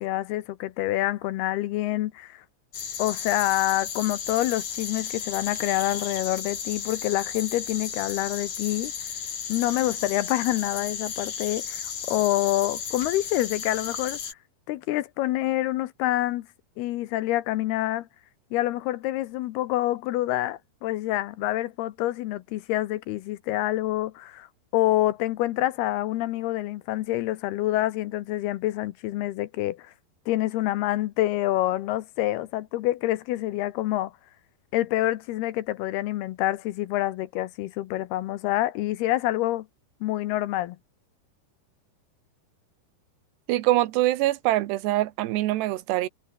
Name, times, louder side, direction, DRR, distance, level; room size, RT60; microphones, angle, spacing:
voice 1, 0.0-2.4 3.0-8.9 9.5-14.2 14.7-16.5 16.8-18.1 18.5-24.5 24.7-29.9 30.3-34.1 34.7-39.7 40.0-40.8, left 15 dB, 75° left, 2.7 m, -27 dB
sound 1, 2.7-14.3, left 7 dB, 50° left, 4.3 m, -34 dB
voice 2, 43.5-46.1, right 16 dB, 80° right, 3.2 m, -24 dB
omnidirectional pair, 4.9 m